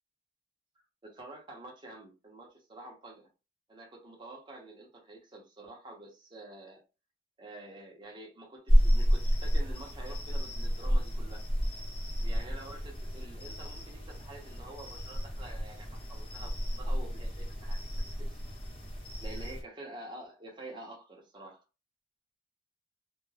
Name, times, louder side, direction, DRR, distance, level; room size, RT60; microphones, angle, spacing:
voice 1, 1.0-3.3 3.7-6.8 7.4-11.4 12.2-17.8 18.3-18.4 19.2-21.6, right 2 dB, 25° right, 0.7 m, -48 dB
sound 1, 8.7-19.6, equal, 30° left, 0.9 m, -30 dB
2.3 x 2.1 x 3.2 m
head